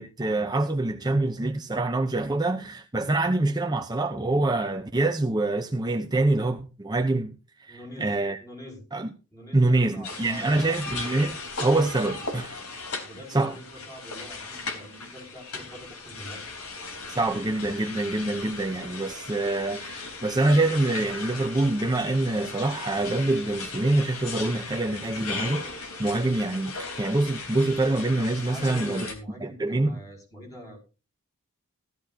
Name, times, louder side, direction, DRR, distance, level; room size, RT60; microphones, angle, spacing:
voice 1, 0.0-8.4 8.9-9.1 9.5-12.6 13.3-13.6 17.1-29.1 29.4-30.0, right 2 dB, 20° right, 0.7 m, -25 dB
voice 2, 7.7-8.1 8.4-8.8 9.3-10.8 13.0-16.4 28.4-30.9, equal, 15° left, 6.1 m, -44 dB
sound 1, 10.0-29.2, left 3 dB, 85° left, 3.6 m, -37 dB
15.0 x 13.5 x 2.7 m
head